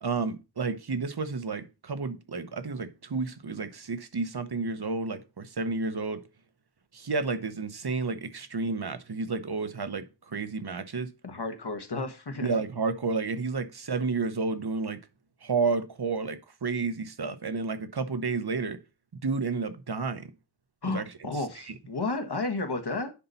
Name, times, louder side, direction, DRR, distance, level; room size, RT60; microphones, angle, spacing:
voice 1, 0.0-6.2 6.9-11.1 12.4-15.0 15.4-18.8 19.2-20.3 20.9-21.0 21.3-21.7, right 4 dB, 75° right, 1.0 m, -31 dB
voice 2, 11.2-12.5 20.8-23.1, left 3 dB, 85° left, 1.4 m, -32 dB
10.0 x 4.0 x 5.4 m
wide cardioid pair, 50°, 39 cm